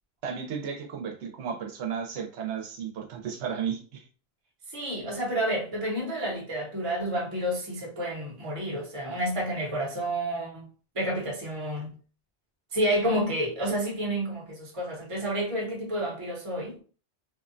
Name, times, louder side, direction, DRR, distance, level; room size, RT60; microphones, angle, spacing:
voice 1, 0.2-4.0, right 7 dB, 85° right, 0.9 m, -34 dB
voice 2, 4.7-10.7 10.9-11.9 12.7-16.8, right 1 dB, 35° right, 0.8 m, -30 dB
2.6 x 2.1 x 2.5 m
omnidirectional pair, 1.1 m